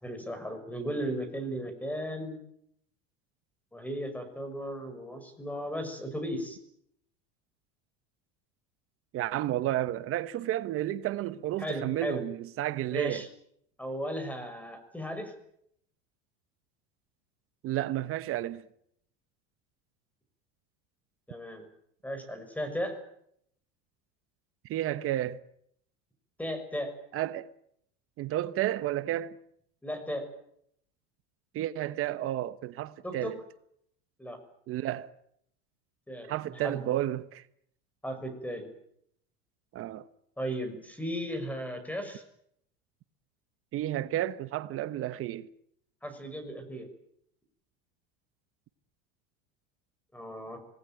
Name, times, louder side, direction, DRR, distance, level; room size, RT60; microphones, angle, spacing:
voice 1, 0.0-2.4 3.7-6.6 11.6-12.2 12.9-13.3 13.8-15.3 21.3-21.7 22.0-23.0 26.4-26.9 29.8-30.2 33.0-33.3 34.2-34.4 36.1-36.8 38.0-38.7 40.4-42.2 46.0-46.9 50.1-50.6, equal, 5° left, 6.2 m, -36 dB
voice 2, 9.1-13.3 17.6-18.6 24.6-25.4 27.1-27.5 28.2-29.4 31.5-33.4 34.7-35.1 36.3-37.4 39.7-40.1 43.7-45.5, right 13 dB, 45° right, 1.2 m, -31 dB
26.0 x 18.5 x 9.2 m
supercardioid pair, 125°, 30 cm